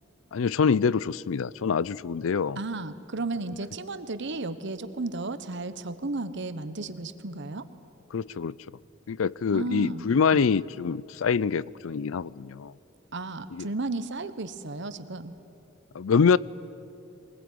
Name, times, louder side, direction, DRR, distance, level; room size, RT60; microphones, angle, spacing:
voice 1, 0.3-2.6 8.1-8.6 9.1-12.7 13.5-13.7 15.9-16.4, left 5 dB, 80° left, 22 dB, 0.5 m, -25 dB
voice 2, 2.6-7.6 9.5-10.4 13.1-15.3, right 3 dB, 60° right, 12 dB, 1.2 m, -34 dB
22.0 x 20.5 x 9.4 m, 2.7 s
head